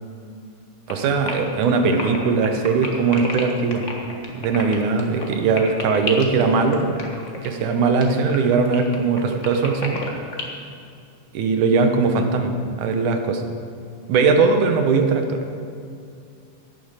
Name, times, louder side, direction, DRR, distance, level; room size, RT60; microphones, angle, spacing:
sound 1, 0.9-10.4, left 3 dB, 45° left, 0.9 m, -31 dB
voice 1, 0.9-3.8 4.3-7.0 7.4-10.0 11.3-13.4 14.1-15.4, right 4 dB, 75° right, 5 dB, 2.5 m, -20 dB
11.5 x 7.1 x 8.9 m, 2.5 s
omnidirectional pair, 3.7 m